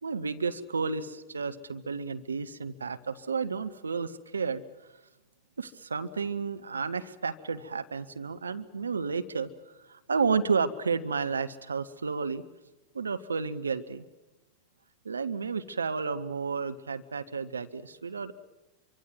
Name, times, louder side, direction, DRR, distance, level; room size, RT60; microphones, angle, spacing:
voice 1, 0.0-4.6 5.6-12.4 12.9-14.0 15.0-18.3, right 5 dB, 75° right, 10 dB, 0.9 m, -32 dB
27.0 x 24.5 x 7.8 m, 1.0 s
figure-of-eight pair, 90°, 0 cm